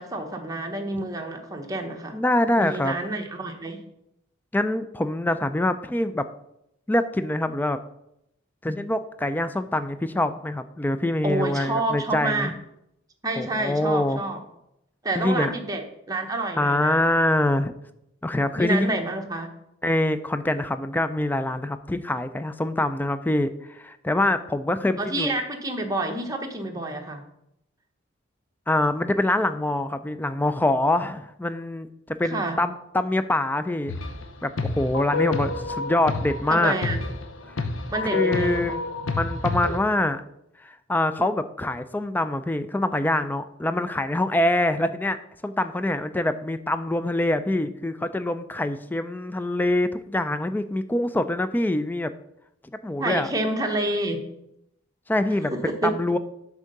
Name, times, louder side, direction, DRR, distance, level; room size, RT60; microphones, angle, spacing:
voice 1, 0.0-2.2 2.6-3.8 11.2-12.5 13.2-14.4 15.0-17.0 18.5-19.5 25.0-27.2 32.2-32.6 36.5-37.0 37.9-38.8 53.0-54.2 55.5-56.0, right 2 dB, 20° right, 3 dB, 0.9 m, -28 dB
voice 2, 2.1-2.9 4.5-6.3 6.9-7.8 8.6-12.5 13.4-14.2 15.2-15.5 16.6-17.7 18.2-18.9 19.8-25.3 28.7-33.9 34.4-36.7 38.1-38.8 39.2-40.2 40.6-45.2 45.4-52.1 52.8-53.3 55.1-55.5 55.8-56.2, left 1 dB, 10° left, 11 dB, 0.3 m, -24 dB
sound 1, 33.9-34.3 34.6-39.8, left 3 dB, 70° left, 0.7 m, -29 dB
8.1 x 3.7 x 6.6 m, 0.81 s
head